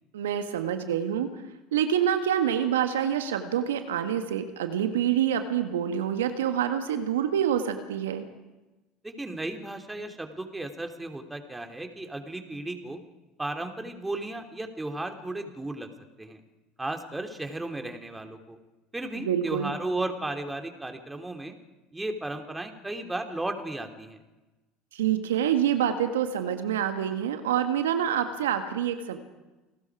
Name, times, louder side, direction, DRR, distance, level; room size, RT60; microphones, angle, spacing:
voice 1, 0.1-1.3 1.7-8.3 19.2-19.7 24.9-29.2, right 9 dB, 80° right, 7 dB, 1.7 m, -26 dB
voice 2, 9.0-13.0 13.4-15.9 16.2-16.4 16.8-18.6 18.9-21.5 21.9-24.2, right 2 dB, 10° right, 5 dB, 3.1 m, -34 dB
29.0 x 19.0 x 4.9 m, 1.1 s
hypercardioid pair, 70°, 0 cm